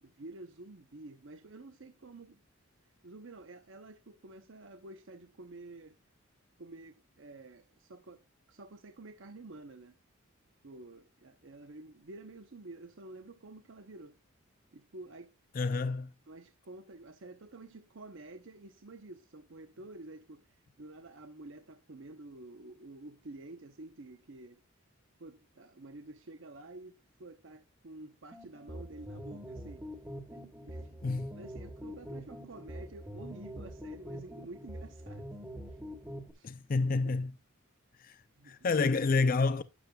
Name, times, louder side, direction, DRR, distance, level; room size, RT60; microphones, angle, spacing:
voice 1, 0.0-2.4 3.0-6.0 6.6-10.0 10.6-14.2 14.7-15.3 15.7-15.9 16.3-24.6 25.2-29.8 30.3-30.9 31.3-35.3 35.7-35.8 36.3-36.5 37.0-37.2 38.3-38.7, right 2 dB, 60° right, 0.8 m, -50 dB
voice 2, 15.5-16.1 31.0-31.4 36.4-37.3 38.0-38.2 38.5-39.6, left 3 dB, 40° left, 0.5 m, -29 dB
sound 1, 28.3-36.3, equal, 10° right, 1.3 m, -44 dB
12.0 x 8.9 x 2.3 m
head